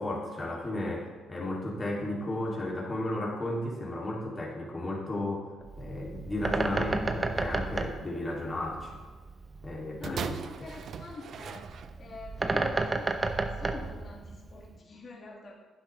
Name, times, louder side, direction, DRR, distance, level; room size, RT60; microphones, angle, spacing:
voice 1, 0.0-5.5 5.8-9.0 9.6-10.4, left 1 dB, 30° left, -3 dB, 3.0 m, -34 dB
Bird, 5.6-14.8, right 3 dB, 30° right, 1.0 m, -33 dB
voice 2, 6.6-7.3 10.0-11.7 12.0-15.5, left 3 dB, 45° left, -3 dB, 2.3 m, -45 dB
sound 1, 10.0-12.3 13.1-13.2, right 7 dB, 60° right, 0.6 m, -39 dB
12.0 x 10.0 x 3.4 m, 1.4 s
cardioid pair, 90°, 0 cm